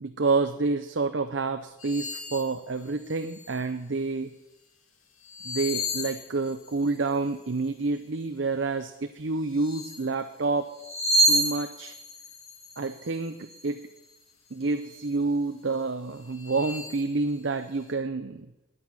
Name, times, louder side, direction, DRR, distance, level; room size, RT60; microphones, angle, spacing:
voice 1, 0.0-4.3 5.4-10.7 11.3-11.9 12.8-13.9 14.5-18.5, right 3 dB, 60° right, 7 dB, 0.7 m, -28 dB
sound 1, 1.8-2.5 3.0-3.6 5.3-6.9 9.5-10.1 10.7-14.2 14.6-15.1 15.7-15.8 16.3-17.0, right 1 dB, 75° left, 2.2 m, -30 dB
10.5 x 9.5 x 9.7 m, 0.99 s
head